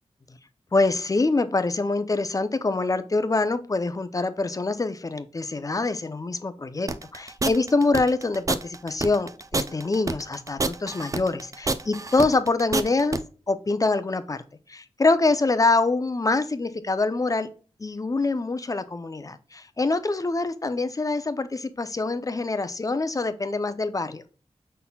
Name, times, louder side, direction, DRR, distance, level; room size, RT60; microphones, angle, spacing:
voice 1, 0.7-13.2 13.5-14.4 14.7-17.5 17.8-24.2, left 3 dB, 30° left, 12 dB, 0.6 m, -25 dB
sound 1, 6.9-13.2, right 3 dB, 30° right, 0.4 m, -27 dB
5.4 x 4.2 x 2.2 m, 0.37 s
wide cardioid pair, 85°, 11 cm